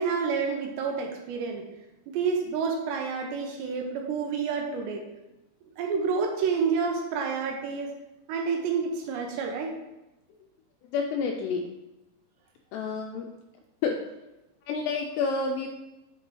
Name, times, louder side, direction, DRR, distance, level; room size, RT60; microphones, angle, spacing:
voice 1, 0.0-1.6 2.1-5.0 5.8-7.9 8.3-9.7, right 5 dB, 80° right, 2 dB, 2.9 m, -29 dB
voice 2, 10.9-11.7 12.7-13.3 13.8-14.0 14.7-15.7, left 4 dB, 85° left, 2 dB, 2.5 m, -29 dB
8.3 x 6.0 x 3.1 m, 0.97 s
omnidirectional pair, 5.2 m